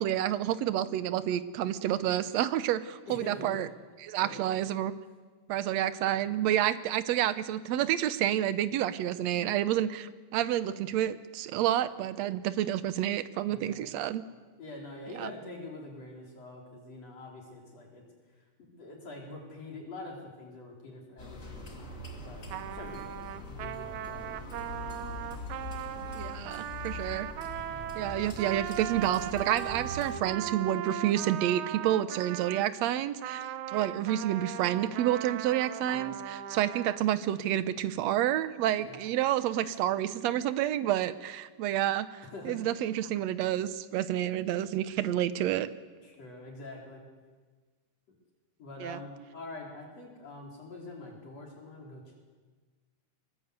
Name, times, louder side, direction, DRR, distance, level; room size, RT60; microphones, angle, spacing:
voice 1, 0.0-3.7 4.0-4.9 5.5-14.2 15.2-15.3 26.2-27.3 27.9-45.7 48.8-49.0, right 12 dB, 70° right, 13 dB, 2.0 m, -29 dB
voice 2, 3.1-3.6 4.2-4.4 13.5-13.9 14.6-18.0 18.6-22.4 22.7-24.9 35.9-36.2 38.8-39.1 39.7-39.8 42.2-42.6 46.0-47.0 48.1-48.2 48.6-52.2, left 2 dB, 60° left, -1 dB, 5.2 m, -45 dB
sound 1, 21.2-30.2, left 2 dB, 25° left, 2.9 m, -43 dB
Trumpet, 22.5-32.7 33.2-37.0, right 11 dB, 90° right, 2.4 m, -38 dB
24.5 x 20.5 x 8.3 m, 1.4 s
omnidirectional pair, 3.3 m